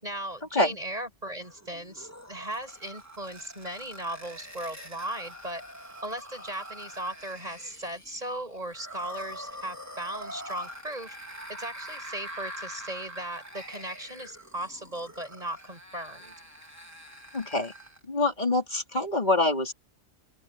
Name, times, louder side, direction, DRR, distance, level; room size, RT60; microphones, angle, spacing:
voice 1, 0.0-5.6 6.0-11.2 11.6-16.3, right 1 dB, 30° right, 8.0 m, -37 dB
sound 1, 1.4-18.0, equal, 15° right, 3.8 m, -44 dB
voice 2, 17.3-17.7 18.0-19.7, left 2 dB, 35° left, 3.9 m, -25 dB
omnidirectional pair, 1.3 m